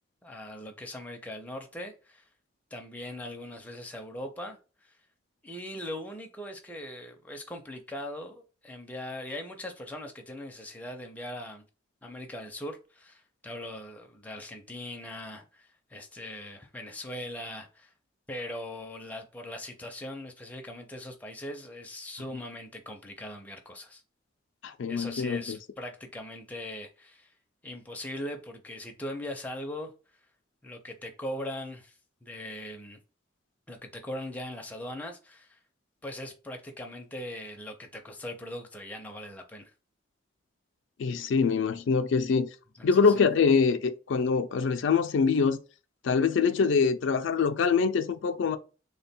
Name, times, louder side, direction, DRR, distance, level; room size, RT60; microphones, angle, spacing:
voice 1, 0.2-2.3 2.7-5.0 5.4-11.6 12.0-17.9 18.3-24.0 24.9-27.3 27.6-29.9 30.6-33.0 33.7-35.6 36.0-39.7 42.8-43.2, left 1 dB, 10° left, 0.5 m, -40 dB
voice 2, 24.6-25.6 41.0-42.5 42.8-45.6 46.0-48.6, left 5 dB, 75° left, 0.4 m, -24 dB
3.3 x 2.2 x 4.2 m
head